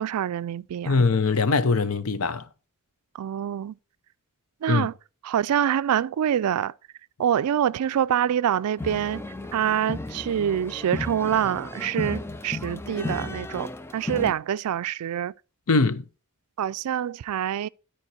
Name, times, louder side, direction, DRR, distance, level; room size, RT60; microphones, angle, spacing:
voice 1, 0.0-1.0 3.1-3.7 4.6-4.9 5.2-6.7 7.2-9.2 9.5-15.3 16.6-17.7, right 9 dB, 85° right, 0.3 m, -26 dB
voice 2, 0.9-2.4 4.7-4.9 15.7-16.0, left 4 dB, 70° left, 0.7 m, -22 dB
sound 1, 8.8-14.3, left 2 dB, 10° left, 0.3 m, -34 dB
12.5 x 4.4 x 4.4 m
head